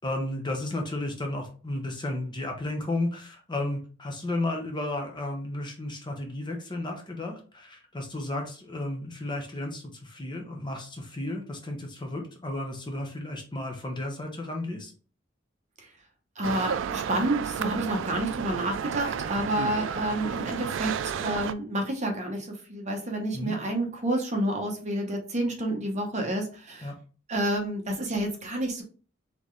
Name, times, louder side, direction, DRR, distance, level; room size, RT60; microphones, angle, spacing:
voice 1, 0.0-14.9 23.3-23.5 26.8-26.9, left 1 dB, 25° left, 2 dB, 0.9 m, -33 dB
voice 2, 16.4-26.9 27.3-28.8, right 1 dB, 40° right, 2 dB, 1.0 m, -29 dB
sound 1, 16.4-21.5, right 7 dB, 80° right, 0.3 m, -32 dB
4.0 x 3.3 x 3.2 m, 0.38 s
head